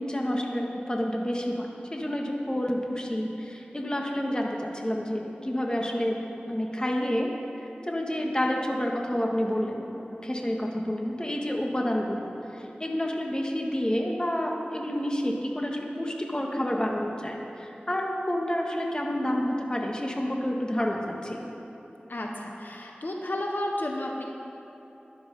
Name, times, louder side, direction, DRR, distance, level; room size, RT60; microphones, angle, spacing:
voice 1, 0.0-7.3 7.6-21.4, equal, 25° left, 0 dB, 1.6 m, -29 dB
voice 2, 22.1-24.2, left 1 dB, 65° left, 0 dB, 1.2 m, -32 dB
13.0 x 11.0 x 5.4 m, 3.0 s
wide cardioid pair, 55°, 3 cm